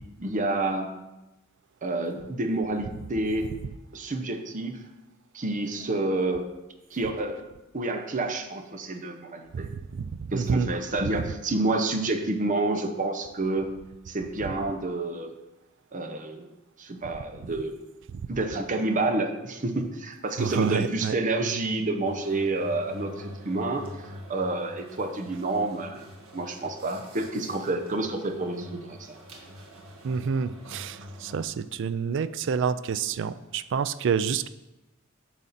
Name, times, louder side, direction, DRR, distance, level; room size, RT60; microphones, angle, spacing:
voice 1, 0.2-0.9 1.8-3.5 3.9-4.8 5.3-6.4 6.9-7.4 7.7-9.7 10.3-13.7 14.1-15.3 15.9-16.5 16.8-17.8 18.3-29.2, right 2 dB, 40° right, 5 dB, 0.8 m, -29 dB
voice 2, 9.5-10.7 17.4-17.5 20.4-21.1 30.0-34.5, right 6 dB, 60° right, 15 dB, 0.4 m, -28 dB
sound 1, 22.0-31.4, left 1 dB, 90° right, 1.5 m, -45 dB
9.1 x 6.2 x 4.1 m, 1.0 s
head